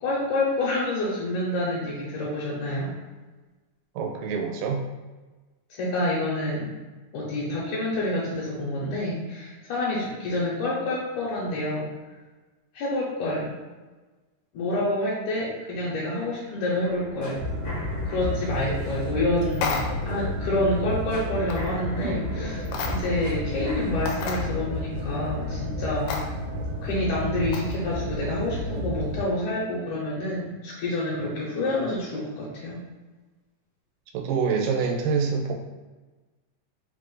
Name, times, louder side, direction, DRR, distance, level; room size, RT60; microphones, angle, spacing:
voice 1, 0.0-2.9 5.7-6.7 7.1-11.9 12.7-13.5 14.5-17.4 18.1-26.3 26.8-32.8, left 1 dB, 75° left, -6 dB, 2.2 m, -28 dB
voice 2, 4.0-4.9 34.1-35.5, right 5 dB, 90° right, 2 dB, 2.3 m, -26 dB
sound 1, 16.8-26.8 27.2-27.3, right 1 dB, 60° left, 1.3 m, -43 dB
sound 2, 17.3-29.2, left 1 dB, 70° right, 2.0 m, -31 dB
sound 3, 19.5-20.1 21.5-21.7 22.7-23.2 23.6-23.7 24.1-24.4 26.1-26.2 27.5-27.8, left 5 dB, 90° left, 2.2 m, -30 dB
5.1 x 2.4 x 3.8 m, 1.2 s
omnidirectional pair, 3.7 m